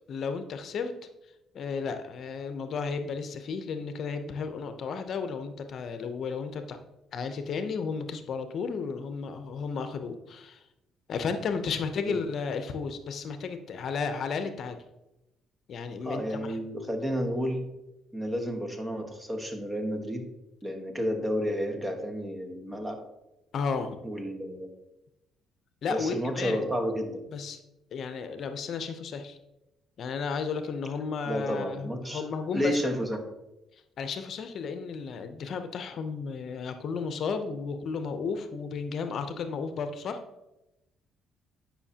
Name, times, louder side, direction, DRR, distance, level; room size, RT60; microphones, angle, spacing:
voice 1, 0.1-0.9 1.5-6.8 7.1-10.6 11.1-14.8 15.7-16.6 23.5-24.0 25.8-26.7 27.3-27.6 27.9-29.4 30.0-32.8 34.0-40.2, left 5 dB, 60° left, 8 dB, 0.7 m, -33 dB
voice 2, 16.0-17.7 18.1-20.3 20.6-23.0 24.0-24.7 25.9-27.2 31.3-32.3 32.5-33.2, equal, 20° right, 4 dB, 1.3 m, -31 dB
9.7 x 5.7 x 2.8 m, 0.93 s
cardioid pair, 85°, 0 cm